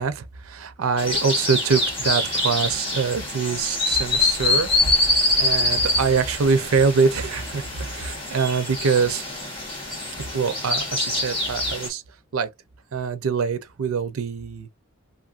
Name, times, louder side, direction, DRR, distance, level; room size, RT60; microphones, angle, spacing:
voice 1, 0.0-9.2 10.3-12.0 12.3-12.5 12.9-14.7, right 5 dB, 85° right, 0.5 m, -24 dB
sound 1, 1.0-11.9, left 2 dB, 25° left, 1.3 m, -25 dB
2.9 x 2.5 x 2.4 m
head